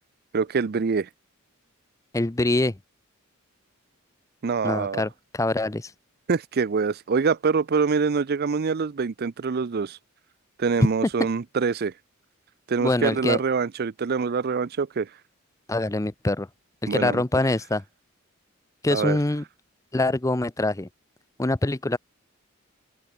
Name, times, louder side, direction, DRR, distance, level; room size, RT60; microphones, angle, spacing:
voice 1, 0.3-1.1 4.4-5.0 6.3-10.0 10.6-11.9 12.7-15.1 16.9-17.2 18.9-19.2, right 5 dB, 45° right, 0.5 m, -25 dB
voice 2, 2.1-2.8 4.6-5.9 12.8-13.4 15.7-16.5 16.9-17.8 18.8-19.4 19.9-20.9 21.4-22.0, left 2 dB, 15° left, 0.6 m, -24 dB
open air
head